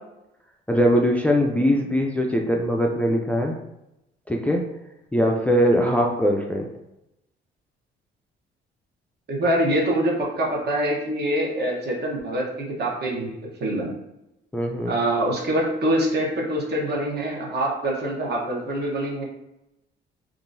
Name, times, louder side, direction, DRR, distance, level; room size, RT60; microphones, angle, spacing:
voice 1, 0.7-3.6 4.3-4.6 5.1-6.7 14.5-15.0, equal, 5° left, 0 dB, 0.4 m, -21 dB
voice 2, 9.3-13.9 14.9-19.2, right 1 dB, 55° right, -2 dB, 1.0 m, -25 dB
3.7 x 2.5 x 2.6 m, 0.87 s
cardioid pair, 90°, 20 cm